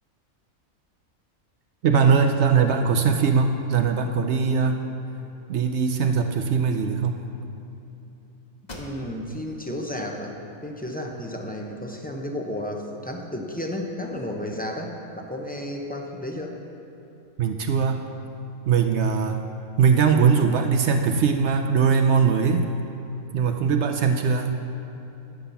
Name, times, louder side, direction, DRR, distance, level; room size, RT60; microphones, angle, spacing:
voice 1, 1.8-4.9 5.5-7.2 17.4-18.1 18.7-19.5 19.8-22.7 23.3-24.7, right 6 dB, 65° right, 5 dB, 0.7 m, -21 dB
sound 1, 8.6-9.5 9.9-10.0 10.6-11.5, left 1 dB, 35° left, 1.2 m, -44 dB
voice 2, 8.7-10.3 10.6-16.6, left 1 dB, 10° left, 1 dB, 0.4 m, -32 dB
10.0 x 5.7 x 6.8 m, 3.0 s
omnidirectional pair, 1.5 m